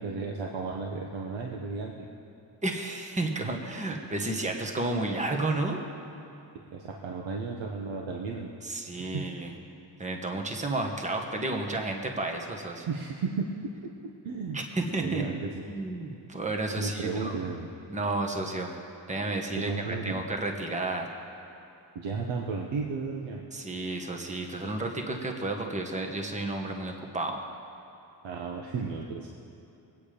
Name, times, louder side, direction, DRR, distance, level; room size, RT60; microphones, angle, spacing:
voice 1, 0.0-2.1 6.6-8.5 9.1-9.3 12.9-13.5 14.2-14.6 15.0-15.5 16.8-17.7 19.6-20.1 21.9-23.4 28.2-29.3, right 4 dB, 85° right, 0 dB, 1.3 m, -34 dB
voice 2, 2.6-5.8 8.6-9.5 10.0-12.9 14.5-15.2 15.7-17.4 17.9-18.7 19.1-21.1 23.5-27.4, right 2 dB, 15° right, 2 dB, 1.3 m, -32 dB
22.5 x 9.2 x 5.1 m, 2.8 s
cardioid pair, 135°, 45 cm